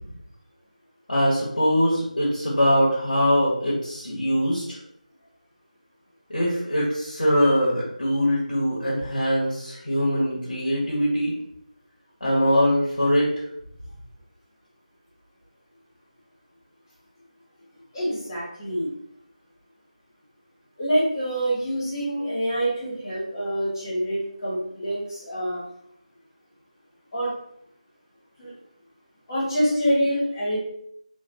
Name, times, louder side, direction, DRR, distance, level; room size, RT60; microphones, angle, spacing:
voice 1, 1.1-4.6 6.3-11.3 12.2-13.4, equal, 90° left, -6 dB, 1.4 m, -22 dB
voice 2, 17.9-18.9 20.8-25.6 27.1-27.3 28.4-28.5 29.3-30.6, equal, 30° left, -8 dB, 1.4 m, -26 dB
3.3 x 2.6 x 2.7 m, 0.73 s
figure-of-eight pair, 170°, 4 cm